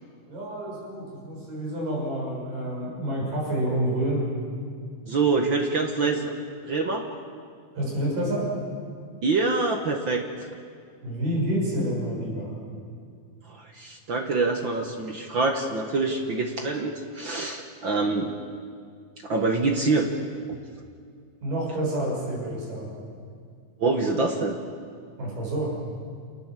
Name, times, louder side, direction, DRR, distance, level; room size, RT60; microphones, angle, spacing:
voice 1, 0.3-4.2 7.7-8.5 11.0-12.6 21.4-22.9 25.2-25.7, right 1 dB, 80° right, -3 dB, 8.2 m, -28 dB
voice 2, 5.1-6.3 6.6-7.1 9.2-10.2 13.5-18.3 19.2-20.1 20.5-20.6 23.8-24.6, right 3 dB, 50° right, 3 dB, 1.5 m, -25 dB
27.5 x 19.0 x 7.5 m, 2.2 s
omnidirectional pair, 3.8 m